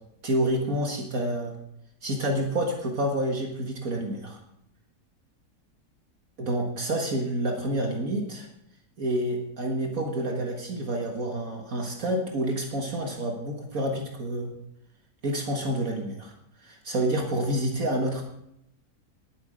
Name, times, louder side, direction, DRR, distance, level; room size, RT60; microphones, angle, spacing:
voice 1, 0.2-1.6 2.0-4.4 6.4-8.5 9.0-14.5 15.2-16.3 16.6-18.2, right 1 dB, 60° right, 1 dB, 2.1 m, -28 dB
19.5 x 7.9 x 5.1 m, 0.79 s
omnidirectional pair, 1.7 m